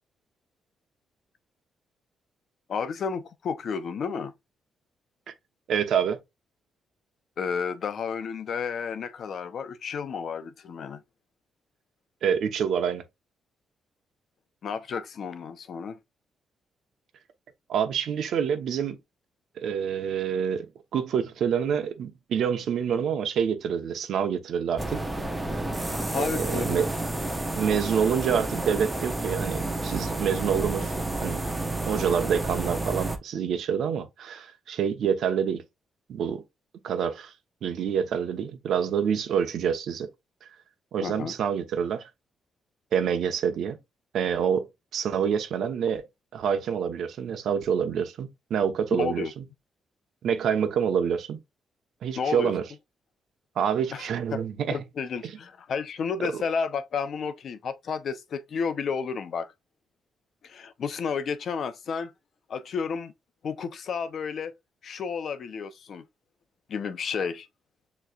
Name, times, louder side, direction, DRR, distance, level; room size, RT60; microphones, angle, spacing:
voice 1, 2.7-4.3 7.4-11.0 14.6-16.0 26.1-26.8 41.0-41.3 48.9-49.3 52.1-52.5 53.9-54.4 54.7-59.5 60.4-62.1 62.5-63.1 63.4-64.5 64.8-66.0 66.7-67.5, left 6 dB, 65° left, 0.7 m, -31 dB
voice 2, 5.7-6.2 12.2-13.0 17.7-19.0 19.6-25.0 26.1-26.9 27.5-30.9 31.2-31.4 31.9-35.6 36.1-36.4 36.8-37.3 37.6-40.1 40.9-42.1 42.9-43.8 44.1-46.0 46.3-49.4 50.2-51.4 52.0-52.6 53.6-54.8 55.2-55.3 56.2-56.3, right 7 dB, 75° right, 0.9 m, -27 dB
sound 1, 24.8-33.2, right 2 dB, 10° right, 0.9 m, -30 dB
6.6 x 3.2 x 2.3 m
cardioid pair, 85°, 0 cm